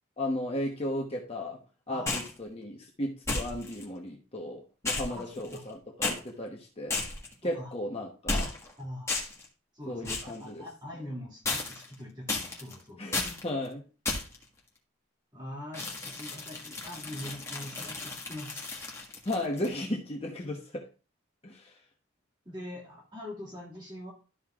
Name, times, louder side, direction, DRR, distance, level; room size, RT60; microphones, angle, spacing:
voice 1, 0.2-1.6 1.9-7.0 7.4-8.5 9.9-10.6 13.0-13.8 19.2-20.8 21.4-21.7, left 1 dB, 30° left, 0 dB, 1.0 m, -35 dB
sound 1, 2.1-2.4 3.3-3.8 4.8-5.7 6.0-6.2 6.9-7.3 8.3-8.7 9.1-9.4 10.0-10.4 11.4-11.9 12.3-12.7 13.1-13.4 14.0-14.4 15.7-19.7, left 3 dB, 15° left, 1.5 m, -33 dB
voice 2, 5.1-5.6 7.4-7.7 8.8-9.2 9.7-13.1 15.3-18.7 22.4-24.1, left 1 dB, 20° right, -3 dB, 2.2 m, -43 dB
12.5 x 5.4 x 2.4 m, 0.34 s
head